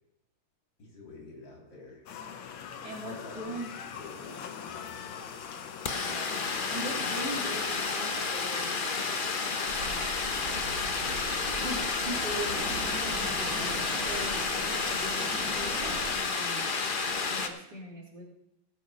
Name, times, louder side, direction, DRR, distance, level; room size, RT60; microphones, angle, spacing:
voice 1, 0.8-2.0 2.9-3.6 4.0-5.3, left 2 dB, 70° left, -2 dB, 4.2 m, -48 dB
sound 1, 2.1-7.6, left 7 dB, 90° left, 1.7 m, -43 dB
voice 2, 2.8-3.7 5.9-9.1 9.8-10.5 11.6-12.8 13.4-16.7 17.3-18.3, right 1 dB, 55° right, -3 dB, 3.7 m, -41 dB
sound 2, 3.8-3.9 4.1-17.5, left 4 dB, 45° left, 0.7 m, -31 dB
sound 3, 9.7-16.1, right 3 dB, 90° right, 2.4 m, -40 dB
17.5 x 7.1 x 5.2 m, 0.84 s
omnidirectional pair, 2.1 m